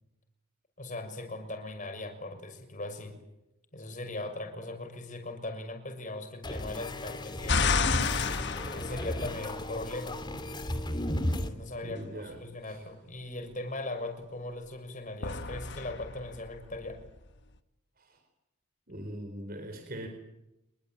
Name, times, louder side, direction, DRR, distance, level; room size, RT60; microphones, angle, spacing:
voice 1, 0.8-3.2 3.7-7.8 8.7-10.2 11.2-17.0, left 2 dB, 35° left, 6 dB, 6.0 m, -39 dB
sound 1, 6.4-11.5, left 1 dB, 20° left, 2.8 m, -35 dB
sound 2, 7.5-9.9 15.2-17.3, left 4 dB, 55° left, 1.6 m, -31 dB
voice 2, 11.8-12.4 12.7-12.8 18.0-18.2 18.9-20.1, equal, 45° right, 6 dB, 4.3 m, -41 dB
26.5 x 22.5 x 9.0 m, 0.90 s
head